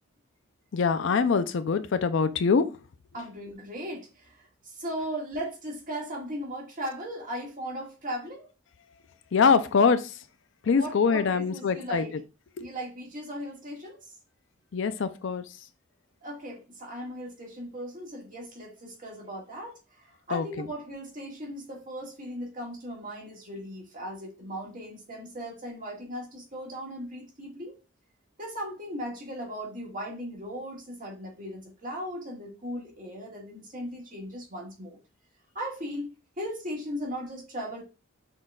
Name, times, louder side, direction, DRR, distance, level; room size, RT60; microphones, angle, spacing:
voice 1, 0.7-2.8 9.3-10.1 10.6-12.0 12.6-12.7 14.7-15.4 20.3-20.4, left 5 dB, 60° left, 0.4 m, -24 dB
voice 2, 3.1-4.4 4.6-8.5 10.6-12.1 12.6-14.1 16.2-27.8 28.4-35.0 35.6-37.8, equal, 40° right, 1.7 m, -37 dB
6.3 x 3.8 x 2.2 m
head